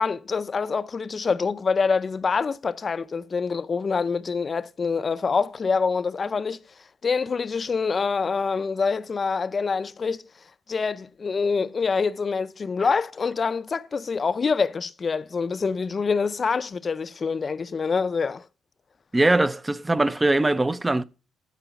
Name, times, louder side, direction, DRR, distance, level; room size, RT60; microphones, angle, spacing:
voice 1, 0.0-6.6 7.0-10.3 10.7-18.4, left 5 dB, 40° left, 0.5 m, -25 dB
voice 2, 19.1-21.0, right 2 dB, 15° right, 0.5 m, -21 dB
12.5 x 4.8 x 5.8 m
cardioid pair, 90°, 0 cm